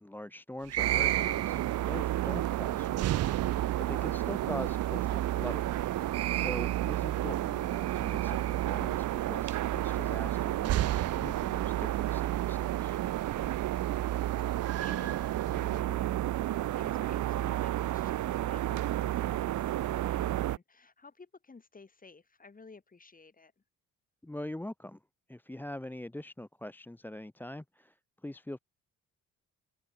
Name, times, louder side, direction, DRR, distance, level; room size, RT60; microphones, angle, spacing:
voice 1, 0.0-5.7 6.3-13.0 24.2-25.0 25.3-28.0 28.2-28.6, left 1 dB, 5° left, 0.8 m, -43 dB
sound 1, 0.6-15.8, right 14 dB, 55° right, 0.5 m, -37 dB
sound 2, 0.8-20.6, right 13 dB, 75° right, 1.4 m, -31 dB
voice 2, 13.4-13.9 14.5-23.5, left 4 dB, 30° left, 7.9 m, -54 dB
open air
cardioid pair, 90°, 30 cm